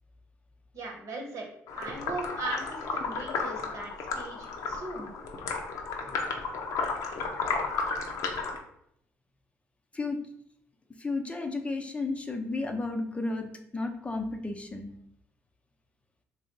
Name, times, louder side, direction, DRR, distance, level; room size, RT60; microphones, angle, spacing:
voice 1, 0.7-1.5 1.8-5.1, right 2 dB, 65° right, 1 dB, 1.0 m, -38 dB
sound 1, 1.7-8.6, left 4 dB, 75° left, 0.6 m, -33 dB
voice 2, 11.0-14.9, left 3 dB, 20° left, 4 dB, 0.5 m, -33 dB
3.0 x 2.6 x 4.4 m, 0.72 s
cardioid pair, 80°, 6 cm